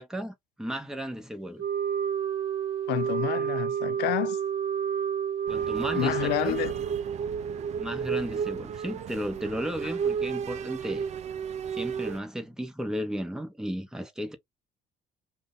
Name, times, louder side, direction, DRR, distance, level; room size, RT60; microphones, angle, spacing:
voice 1, 0.0-1.6 5.5-6.6 7.8-11.0 11.7-14.4, equal, 5° right, 0.8 m, -34 dB
Wind instrument woodwind instrument, 1.6-7.2, right 8 dB, 65° right, 0.8 m, -30 dB
voice 2, 2.9-4.4 5.9-6.7, left 15 dB, 85° left, 0.5 m, -29 dB
sound 1, 5.5-12.2, right 7 dB, 40° right, 0.4 m, -33 dB
2.5 x 2.1 x 3.6 m
cardioid pair, 110°, 17 cm